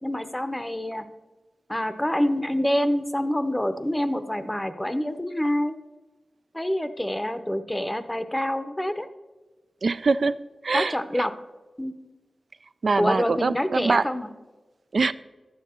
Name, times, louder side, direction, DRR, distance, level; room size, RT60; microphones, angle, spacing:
voice 1, 0.0-1.1 1.7-5.8 6.5-9.1 10.7-11.3 11.8-11.9 13.0-14.3, left 1 dB, 10° left, 11 dB, 0.7 m, -26 dB
voice 2, 9.8-10.3 10.6-11.3 12.8-14.0 14.9-15.1, right 4 dB, 60° right, 14 dB, 0.4 m, -23 dB
12.5 x 9.3 x 4.4 m, 1.2 s
wide cardioid pair, 105°, 0 cm